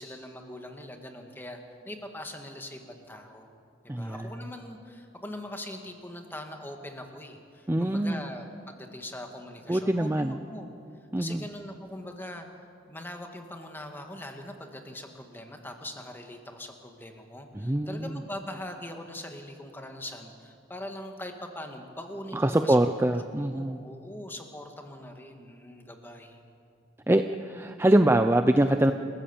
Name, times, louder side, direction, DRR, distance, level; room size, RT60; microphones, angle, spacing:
voice 1, 0.0-1.6 1.9-3.5 3.8-10.7 11.2-12.5 12.9-22.8 23.4-26.4, left 1 dB, 10° left, 4 dB, 1.8 m, -42 dB
voice 2, 3.9-4.3 7.7-8.2 9.7-10.4 11.1-11.4 17.5-18.2 22.3-23.8 27.1-28.9, right 1 dB, 10° right, 7 dB, 0.5 m, -24 dB
28.0 x 15.5 x 7.2 m, 2.5 s
head